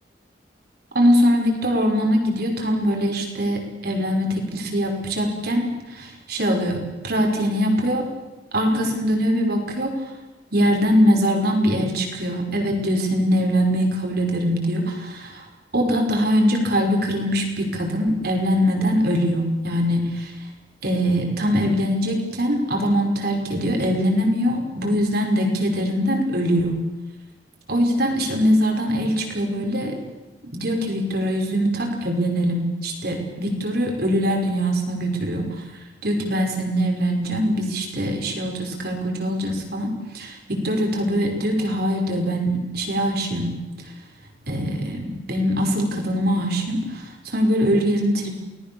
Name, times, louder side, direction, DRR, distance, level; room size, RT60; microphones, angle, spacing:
voice 1, 0.9-8.1 8.5-9.9 10.5-15.4 15.7-20.3 20.8-26.8 27.7-30.0 30.5-35.5 36.0-43.6 44.5-48.3, equal, 60° right, 2 dB, 5.6 m, -22 dB
29.0 x 19.5 x 7.1 m, 1.1 s
head